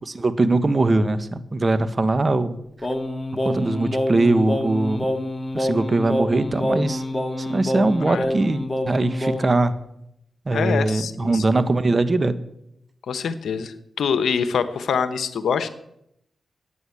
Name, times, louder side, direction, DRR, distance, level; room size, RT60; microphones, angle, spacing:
voice 1, 0.0-2.6 3.4-5.0 5.5-7.0 7.4-8.6 8.9-9.7 10.4-12.3, right 2 dB, 40° right, 12 dB, 1.4 m, -21 dB
Singing, 2.8-9.6, left 1 dB, 20° left, 2.0 m, -26 dB
voice 2, 10.5-11.6 13.1-15.7, left 6 dB, 80° left, 11 dB, 1.1 m, -25 dB
14.5 x 9.5 x 8.5 m, 0.79 s
cardioid pair, 55°, 0 cm